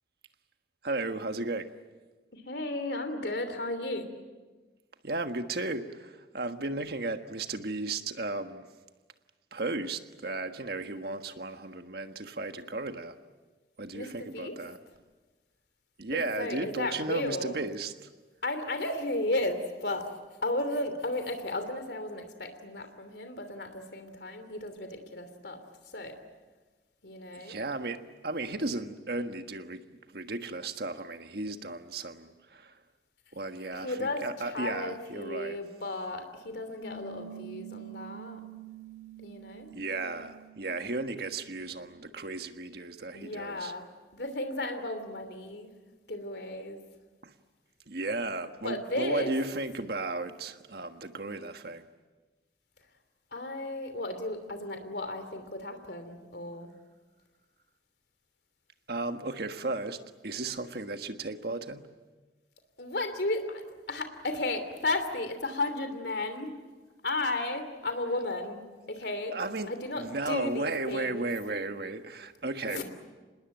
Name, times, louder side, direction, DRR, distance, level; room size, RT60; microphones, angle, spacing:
voice 1, 0.8-1.7 5.0-8.6 9.5-13.2 13.8-14.8 16.0-18.1 27.3-29.8 30.1-32.7 33.3-35.6 39.7-43.7 47.2-47.3 47.9-51.8 58.9-60.0 60.2-61.9 69.3-72.8, right 2 dB, 60° right, 1.5 m, -35 dB
voice 2, 2.3-4.1 13.9-14.6 16.1-17.6 18.4-20.1 20.4-25.6 25.9-26.2 27.0-27.6 33.7-38.4 39.2-39.7 43.1-43.9 44.1-45.7 46.1-46.8 48.6-49.3 53.3-56.7 62.8-63.6 63.9-66.5 67.0-69.3 69.7-71.3 72.7-72.8, left 2 dB, 70° left, 3.0 m, -34 dB
Piano, 36.8-41.9, right 7 dB, 25° left, 1.9 m, -47 dB
26.5 x 20.5 x 9.0 m
head